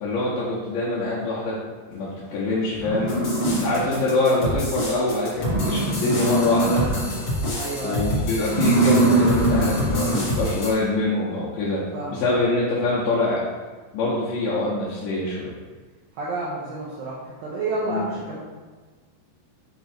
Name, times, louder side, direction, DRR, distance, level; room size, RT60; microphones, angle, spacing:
voice 1, 0.0-1.6 1.9-3.1 3.6-6.8 7.8-11.8 12.1-13.4 13.9-15.6 17.9-18.1, left 2 dB, 75° left, -7 dB, 2.0 m, -24 dB
sound 1, 2.3-2.4 2.8-4.2 4.5-4.6 5.0-5.1 5.3-7.3 7.6-7.9 8.4-10.4, right 2 dB, 60° left, 1.3 m, -23 dB
sound 2, 3.1-10.7, left 1 dB, 90° left, 1.1 m, -28 dB
voice 2, 7.5-8.1 11.9-12.5 16.1-18.4, right 2 dB, 80° right, -7 dB, 2.1 m, -30 dB
7.9 x 3.0 x 4.4 m, 1.4 s
omnidirectional pair, 5.1 m